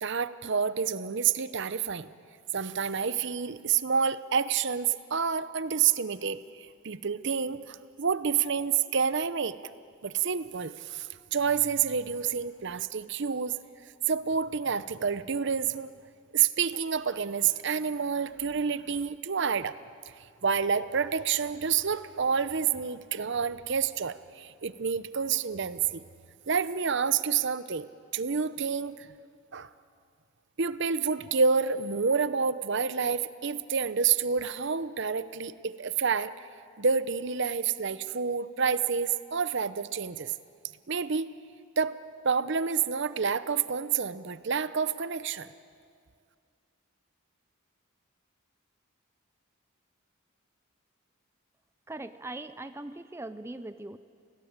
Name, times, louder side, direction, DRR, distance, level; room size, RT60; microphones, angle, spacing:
voice 1, 0.0-2.1 2.5-9.6 10.0-13.5 14.1-15.9 16.3-19.8 20.4-26.0 26.5-27.9 28.1-29.1 29.5-29.7 30.6-36.3 36.8-40.3 40.9-41.3 41.8-42.0 42.2-45.5, right 6 dB, 55° right, 14 dB, 0.7 m, -28 dB
voice 2, 51.9-54.0, right 2 dB, 10° right, 11 dB, 0.5 m, -40 dB
28.5 x 18.0 x 8.9 m, 2.3 s
head